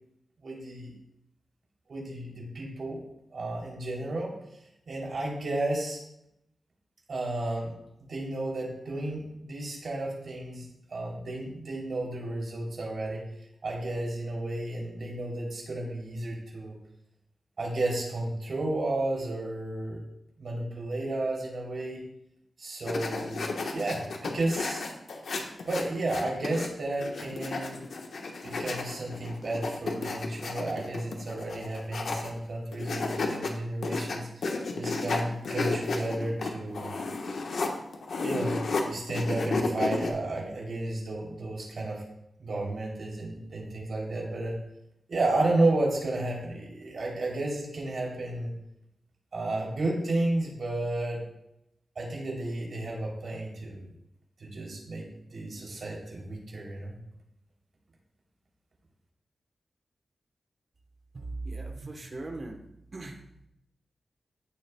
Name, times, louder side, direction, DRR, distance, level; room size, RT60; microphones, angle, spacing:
voice 1, 0.4-0.9 1.9-3.0 3.3-4.3 4.9-6.0 7.1-7.7 8.1-13.2 13.6-16.8 17.6-20.0 20.4-22.0 22.6-24.8 25.6-27.8 28.4-36.9 38.2-42.0 42.4-44.5 45.1-48.5 49.3-51.2 51.9-53.8 54.4-57.0, right 2 dB, 55° right, -2 dB, 3.1 m, -32 dB
sound 1, 22.9-26.7 27.0-32.4 32.7-33.5 33.8-38.8 39.1-40.1, left 3 dB, 70° left, 1.2 m, -32 dB
voice 2, 61.1-62.6 62.9-63.2, right 2 dB, 35° right, 3 dB, 1.1 m, -38 dB
15.0 x 7.1 x 2.3 m, 0.80 s
wide cardioid pair, 160°, 0 cm